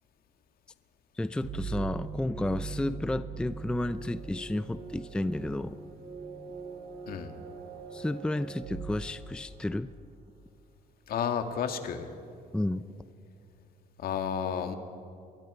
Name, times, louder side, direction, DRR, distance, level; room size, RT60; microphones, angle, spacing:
voice 1, 1.2-5.8 7.9-9.9 12.5-12.8, left 1 dB, 5° left, 13 dB, 0.5 m, -32 dB
sound 1, 1.4-10.0, right 5 dB, 60° right, 3.9 m, -41 dB
voice 2, 11.1-12.1 14.0-14.8, left 7 dB, 60° left, 6 dB, 2.1 m, -31 dB
28.0 x 22.0 x 5.0 m, 2.6 s
cardioid pair, 110°, 17 cm